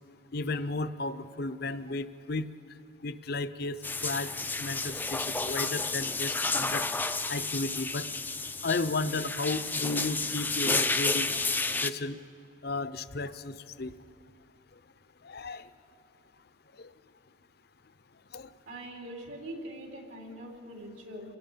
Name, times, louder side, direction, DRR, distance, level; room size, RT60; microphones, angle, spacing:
voice 1, 0.3-2.5 3.0-4.3 4.6-6.9 7.3-8.1 8.6-11.4 11.8-12.2 12.6-13.9 15.2-15.7 16.8-16.9 18.3-18.5, left 3 dB, 55° left, 13 dB, 0.7 m, -34 dB
sound 1, 3.8-11.9, left 3 dB, 10° left, 0.4 m, -31 dB
voice 2, 18.7-21.4, right 1 dB, 80° right, -1 dB, 3.9 m, -43 dB
28.0 x 18.5 x 5.7 m, 2.4 s
head